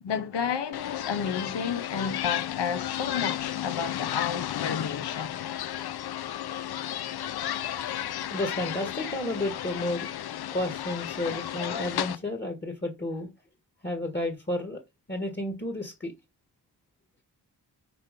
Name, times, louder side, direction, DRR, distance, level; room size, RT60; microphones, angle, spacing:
voice 1, 0.0-5.4, left 7 dB, 90° left, 1.1 m, -31 dB
sound 1, 0.7-12.2, left 11 dB, 65° left, 0.6 m, -33 dB
voice 2, 8.3-10.1 10.5-13.3 13.8-14.8 15.1-16.1, left 1 dB, 25° left, 1.8 m, -31 dB
6.1 x 4.3 x 5.2 m
cardioid pair, 70°, 41 cm